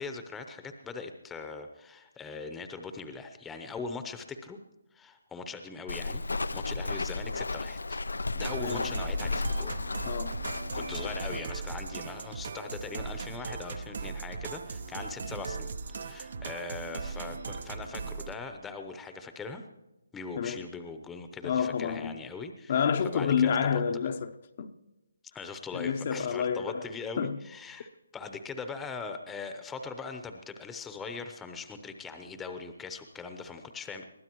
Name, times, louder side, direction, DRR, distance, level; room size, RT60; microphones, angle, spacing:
voice 1, 0.0-4.6 4.9-8.0 8.3-9.8 10.7-19.6 20.1-23.8 25.3-34.0, left 4 dB, 10° left, 0.8 m, -41 dB
Walk footsteps, 5.9-11.4, left 3 dB, 85° left, 0.5 m, -33 dB
sound 1, 8.4-18.3, right 4 dB, 55° right, 0.8 m, -38 dB
voice 2, 8.6-8.9 10.1-10.4 20.4-20.6 21.4-22.2 22.7-24.7 25.7-26.8 27.2-27.4, left 7 dB, 45° left, 0.8 m, -29 dB
22.5 x 15.0 x 3.1 m
figure-of-eight pair, 155°, 0 cm